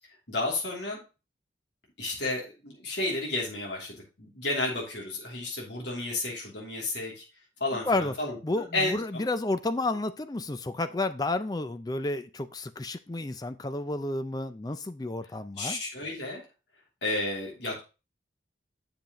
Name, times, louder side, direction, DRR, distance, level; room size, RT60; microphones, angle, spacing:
voice 1, 0.3-1.0 2.0-7.2 7.6-9.3 15.6-16.4 17.0-17.8, left 2 dB, 70° left, -2 dB, 2.9 m, -32 dB
voice 2, 8.4-15.8, left 2 dB, 20° left, 12 dB, 0.4 m, -31 dB
7.7 x 7.0 x 3.0 m, 0.30 s
head